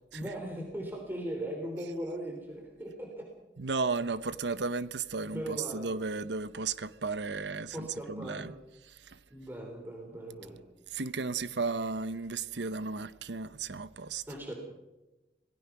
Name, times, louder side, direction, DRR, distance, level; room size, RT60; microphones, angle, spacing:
voice 1, 0.1-3.3 5.3-5.9 7.7-8.5 9.3-10.6 14.3-14.5, right 1 dB, 10° right, 3.4 m, -39 dB
voice 2, 3.6-8.5 9.0-9.2 10.9-14.2, right 4 dB, 80° right, 0.9 m, -34 dB
26.0 x 18.0 x 6.0 m
head